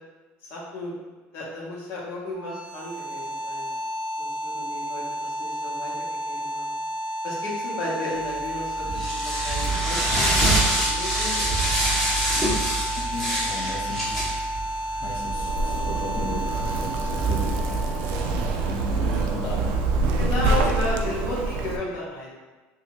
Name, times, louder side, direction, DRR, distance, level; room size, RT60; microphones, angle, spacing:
voice 1, 0.4-0.9 1.3-3.7 4.2-5.9 6.3-6.7 7.2-11.7 20.1-22.3, left 1 dB, 65° left, -4 dB, 0.9 m, -33 dB
sound 1, 2.3-19.2, equal, 20° right, 0.5 m, -32 dB
sound 2, 8.3-20.7, right 1 dB, ahead, 0.8 m, -27 dB
voice 2, 12.9-14.2 15.0-19.8 20.3-20.7, left 2 dB, 45° left, 0 dB, 0.5 m, -35 dB
Zipper (clothing), 15.1-21.8, right 3 dB, 85° right, 0.3 m, -26 dB
2.7 x 2.3 x 3.1 m, 1.2 s
cardioid pair, 150°, 5 cm